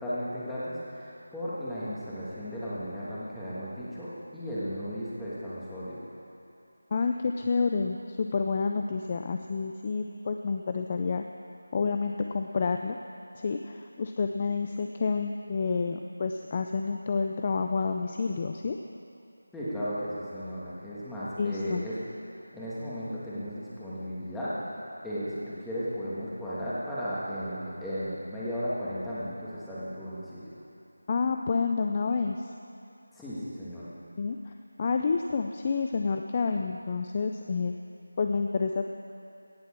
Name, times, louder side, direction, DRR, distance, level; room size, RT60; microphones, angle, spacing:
voice 1, 0.0-6.0 19.5-21.9 22.5-24.5 25.0-30.5 33.1-33.9, equal, 5° left, -12 dB, 1.7 m, -35 dB
voice 2, 6.9-11.2 11.7-13.0 13.3-18.8 21.4-21.9 31.1-32.5 34.2-34.5 34.8-37.7 38.2-38.9, left 4 dB, 25° left, 4 dB, 0.4 m, -29 dB
17.0 x 7.5 x 7.5 m, 2.7 s
figure-of-eight pair, 175°, 0 cm